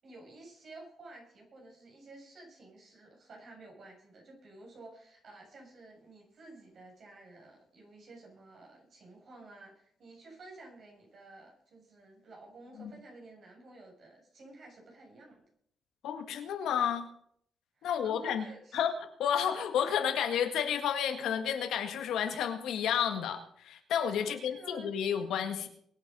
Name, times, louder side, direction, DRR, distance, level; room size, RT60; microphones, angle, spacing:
voice 1, 0.0-15.4 17.8-18.8 24.2-24.9, right 2 dB, 55° right, -1 dB, 7.6 m, -52 dB
voice 2, 16.0-17.1 17.8-18.5 18.7-18.9 19.2-25.7, left 8 dB, 85° left, 6 dB, 1.8 m, -31 dB
22.5 x 8.3 x 5.5 m, 0.69 s
cardioid pair, 100°, 0 cm